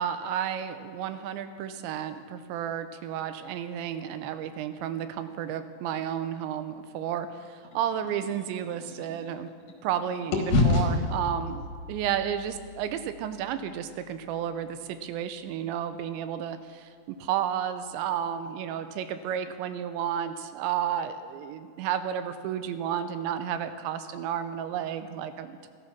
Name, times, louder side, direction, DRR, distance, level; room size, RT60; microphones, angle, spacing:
voice 1, 0.0-9.5 9.8-16.9 17.2-25.7, right 9 dB, 85° right, 10 dB, 3.0 m, -32 dB
sound 1, 7.6-9.9 10.3-14.5, left 3 dB, 55° left, 2.1 m, -30 dB
14.5 x 14.0 x 5.9 m, 2.1 s
omnidirectional pair, 5.1 m